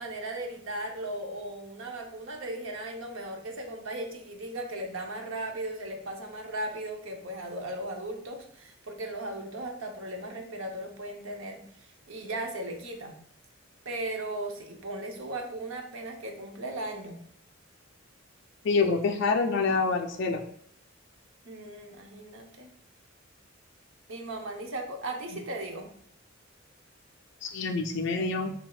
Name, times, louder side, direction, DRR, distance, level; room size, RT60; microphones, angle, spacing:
voice 1, 0.0-13.2 13.8-17.2 21.4-22.7 24.1-25.9, right 1 dB, 80° right, 3 dB, 0.8 m, -37 dB
voice 2, 18.6-20.4 27.4-28.5, left 4 dB, 60° left, 4 dB, 0.3 m, -26 dB
7.4 x 2.7 x 2.3 m, 0.63 s
head